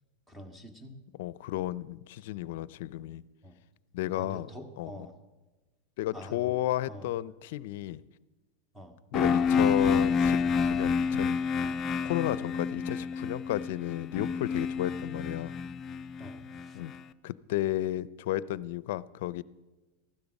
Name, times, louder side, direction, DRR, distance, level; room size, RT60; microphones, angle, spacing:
voice 1, 0.3-0.9 3.4-3.6 4.2-5.1 6.1-6.6 6.9-7.1 8.7-9.0 16.2-16.8, left 1 dB, 5° right, 6 dB, 1.9 m, -46 dB
voice 2, 1.2-3.2 3.9-4.5 4.8-4.9 6.0-8.0 9.1-11.4 12.0-15.5 16.7-16.9 17.2-19.4, left 14 dB, 70° left, 19 dB, 0.5 m, -33 dB
sound 1, 9.1-16.9, left 5 dB, 25° left, 0.6 m, -29 dB
15.0 x 12.5 x 5.4 m, 1.1 s
supercardioid pair, 125°, 0 cm